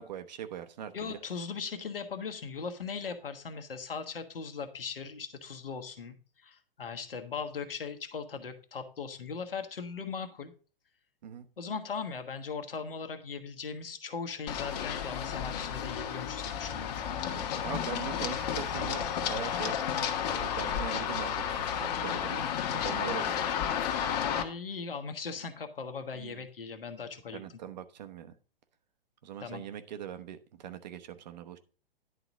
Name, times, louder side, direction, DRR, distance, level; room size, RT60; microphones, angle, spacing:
voice 1, 0.0-1.2 11.2-11.5 17.3-19.8 20.3-23.5 26.1-26.4 27.3-28.3 29.2-31.6, right 9 dB, 50° right, 10 dB, 1.0 m, -41 dB
voice 2, 0.9-10.5 11.6-17.2 24.2-27.4 29.4-29.6, left 5 dB, 70° left, 6 dB, 1.4 m, -39 dB
Run, 14.5-24.4, left 8 dB, 45° left, 1.3 m, -32 dB
10.5 x 4.0 x 6.0 m, 0.38 s
figure-of-eight pair, 115°, 29 cm